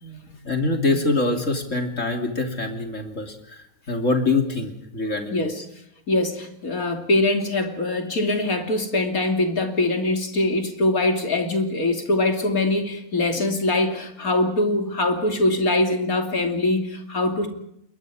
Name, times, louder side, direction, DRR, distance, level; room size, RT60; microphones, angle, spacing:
voice 1, 0.0-5.4, left 3 dB, 60° left, 3 dB, 3.4 m, -25 dB
voice 2, 6.1-17.5, left 2 dB, 75° left, 4 dB, 3.4 m, -23 dB
28.5 x 22.0 x 5.0 m, 0.75 s
omnidirectional pair, 1.5 m